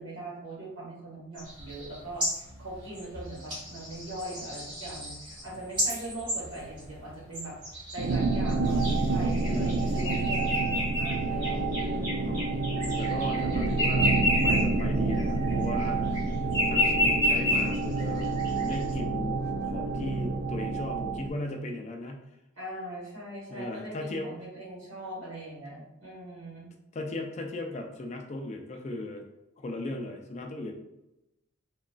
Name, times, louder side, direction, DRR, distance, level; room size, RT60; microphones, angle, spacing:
voice 1, 0.0-7.5 7.9-12.5 22.6-26.7, right 1 dB, 75° right, -7 dB, 1.3 m, -41 dB
sound 1, 1.4-7.0 7.3-14.8 15.1-16.2 16.5-18.9, left 1 dB, 25° right, 1.1 m, -31 dB
sound 2, 8.0-21.3, right 3 dB, 50° right, 0.3 m, -28 dB
voice 2, 9.4-10.1 12.2-12.5 12.8-14.1 14.4-16.3 16.7-18.3 18.6-19.4 19.7-22.2 23.5-24.3 26.9-29.2 29.6-30.7, left 2 dB, 35° left, 3 dB, 0.4 m, -37 dB
2.8 x 2.4 x 2.3 m, 0.92 s
head